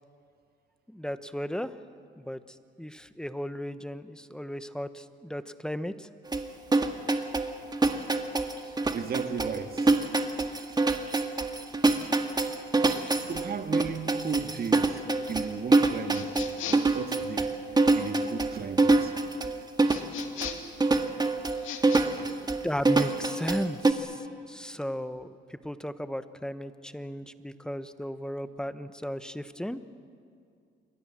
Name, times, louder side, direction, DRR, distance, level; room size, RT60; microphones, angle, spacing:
voice 1, 0.9-1.7 2.2-6.1 22.6-29.8, equal, 5° left, 11 dB, 1.1 m, -35 dB
sound 1, 6.3-23.9, right 3 dB, 20° right, 1.8 m, -25 dB
voice 2, 8.9-9.9 13.2-15.0 15.3-16.3 16.7-17.5 17.9-19.1 22.0-22.3, right 6 dB, 50° right, 7 dB, 2.0 m, -35 dB
sound 2, 16.1-17.0 19.9-20.8 21.6-22.0, left 9 dB, 85° left, 2.1 m, -38 dB
29.0 x 23.0 x 7.5 m, 2.3 s
cardioid pair, 90°, 20 cm